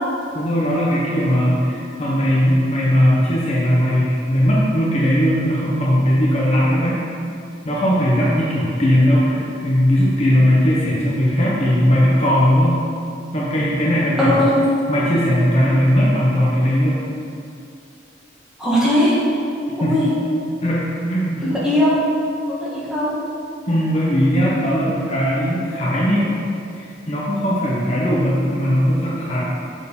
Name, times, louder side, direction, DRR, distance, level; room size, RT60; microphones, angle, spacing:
voice 1, 0.3-7.0 7.6-12.8 13.3-14.4 14.9-17.1 19.8-20.0 20.6-21.4 23.7-26.3 26.8-29.4, equal, 35° left, -6 dB, 0.9 m, -18 dB
voice 2, 14.2-14.6 18.6-19.1 19.8-20.1 21.4-22.0 22.5-23.1, left 1 dB, 5° right, -9 dB, 1.8 m, -18 dB
6.9 x 4.5 x 5.4 m, 2.5 s
head